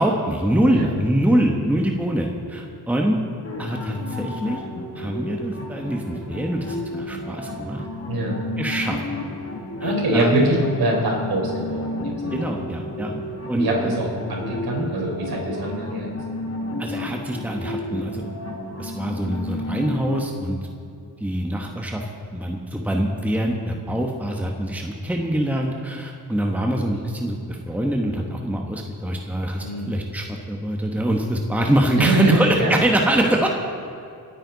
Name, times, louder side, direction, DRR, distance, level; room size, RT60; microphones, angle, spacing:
voice 1, 0.0-3.2 3.6-4.6 4.9-7.8 8.6-9.0 9.8-10.6 12.3-13.2 13.5-14.0 16.8-18.2 18.8-20.6 21.2-33.5, right 1 dB, 5° right, 1 dB, 1.4 m, -24 dB
sound 1, 3.4-20.2, left 1 dB, 35° left, 2.0 m, -32 dB
voice 2, 8.1-8.4 9.8-12.4 13.6-16.1 29.6-30.1 31.9-32.7, right 1 dB, 60° right, -1 dB, 4.6 m, -24 dB
28.5 x 9.6 x 4.1 m, 2.6 s
cardioid pair, 95°, 40 cm